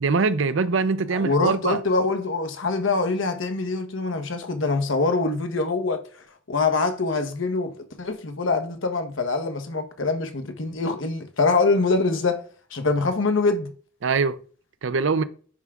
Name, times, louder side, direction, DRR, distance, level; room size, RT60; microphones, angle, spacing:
voice 1, 0.0-1.8 14.0-14.4 14.8-15.2, right 4 dB, 70° right, 0.6 m, -22 dB
voice 2, 1.1-12.4 12.7-13.7, left 3 dB, 75° left, 1.1 m, -24 dB
9.6 x 3.6 x 3.6 m
head